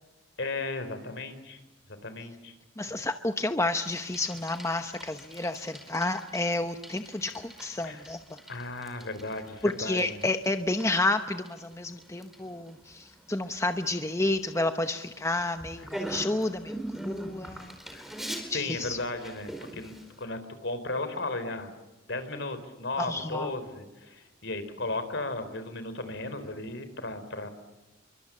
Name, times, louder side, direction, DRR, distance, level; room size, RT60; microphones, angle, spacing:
voice 1, 0.4-1.6 2.0-2.5 7.8-8.1 8.5-10.3 15.8-15.9 17.9-21.7 22.1-27.5, left 2 dB, 60° left, 10 dB, 3.7 m, -35 dB
voice 2, 2.8-8.4 9.6-17.7 18.5-19.0 23.0-23.5, left 2 dB, 15° left, 8 dB, 0.9 m, -30 dB
Bicycle, 3.8-20.3, right 1 dB, ahead, 4.5 m, -43 dB
28.5 x 24.0 x 7.3 m, 1.1 s
head